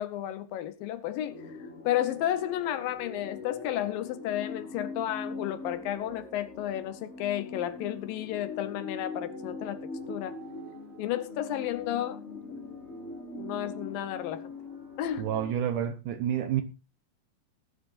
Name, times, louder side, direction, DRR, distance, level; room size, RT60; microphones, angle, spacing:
voice 1, 0.0-1.4 1.8-9.8 10.1-10.4 11.0-12.2 13.4-14.5 15.0-15.3, left 12 dB, 75° left, 2.4 m, -32 dB
sound 1, 1.2-15.5, left 3 dB, 20° left, 5.9 m, -42 dB
voice 2, 15.2-16.6, right 10 dB, 70° right, 2.1 m, -29 dB
18.0 x 11.0 x 2.6 m
omnidirectional pair, 4.3 m